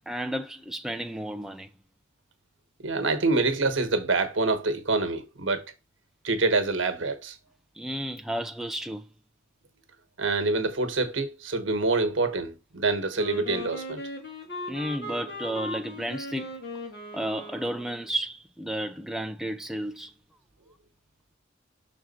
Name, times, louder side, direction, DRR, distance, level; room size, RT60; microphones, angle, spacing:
voice 1, 0.1-1.7 7.8-9.1 14.7-16.7 17.1-20.1, right 1 dB, ahead, 0.3 m, -32 dB
voice 2, 2.8-5.6 6.2-7.3 10.2-14.0, right 3 dB, 75° right, 1.2 m, -26 dB
Wind instrument woodwind instrument, 13.1-18.2, left 1 dB, 55° left, 2.1 m, -38 dB
6.1 x 3.7 x 4.2 m
head